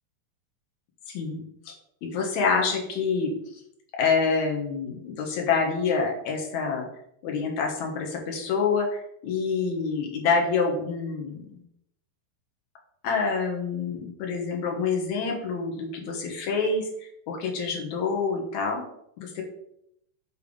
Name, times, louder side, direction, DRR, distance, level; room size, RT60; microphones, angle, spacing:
voice 1, 1.1-1.7 2.0-3.3 4.0-6.8 7.2-11.6 13.0-16.9 17.3-18.8 19.2-19.4, left 5 dB, 65° left, 1 dB, 2.3 m, -27 dB
6.9 x 3.3 x 5.3 m, 0.75 s
omnidirectional pair, 3.9 m